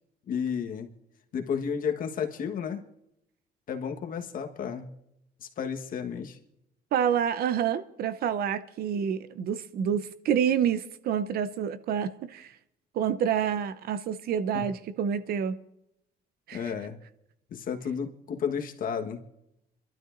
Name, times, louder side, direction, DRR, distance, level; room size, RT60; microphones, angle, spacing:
voice 1, 0.3-0.9 1.3-2.8 3.7-4.9 5.4-6.4 14.5-14.7 16.5-17.0 17.5-19.2, left 7 dB, 55° left, 1.4 m, -32 dB
voice 2, 6.9-12.5 12.9-15.6 16.5-16.6, right 8 dB, 65° right, 0.7 m, -28 dB
26.0 x 12.5 x 2.6 m
cardioid pair, 110°, 17 cm